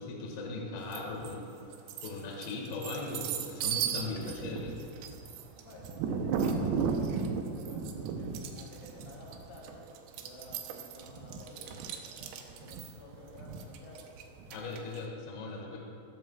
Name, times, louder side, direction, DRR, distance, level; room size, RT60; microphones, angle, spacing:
voice 1, 0.0-1.5 2.0-4.7 14.5-15.8, left 3 dB, 60° left, -2 dB, 3.4 m, -38 dB
sound 1, 0.9-1.3 1.7-15.0, right 6 dB, 85° right, 3.6 m, -35 dB
voice 2, 5.6-14.1, left 1 dB, 80° left, -4 dB, 5.8 m, -52 dB
24.0 x 14.0 x 2.4 m, 2.7 s
omnidirectional pair, 5.9 m